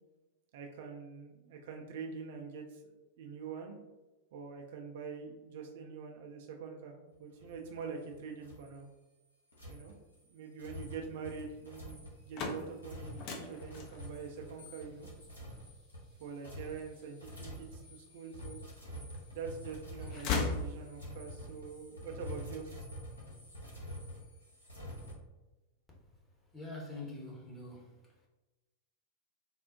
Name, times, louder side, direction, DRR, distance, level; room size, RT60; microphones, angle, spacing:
voice 1, 0.5-2.8 3.2-3.8 4.3-8.9 9.7-9.9 10.3-15.1 16.2-18.6 19.3-22.9, right 5 dB, 55° right, 0.4 m, -45 dB
sound 1, 7.4-8.1 8.4-8.7 9.5-25.1, equal, 80° left, 0.9 m, -48 dB
sound 2, 12.0-18.0 18.6-19.4 19.7-21.3, left 4 dB, 40° left, 0.5 m, -39 dB
voice 2, 26.5-27.9, left 2 dB, 15° left, 0.9 m, -44 dB
3.6 x 2.0 x 2.7 m
figure-of-eight pair, 90°, 0 cm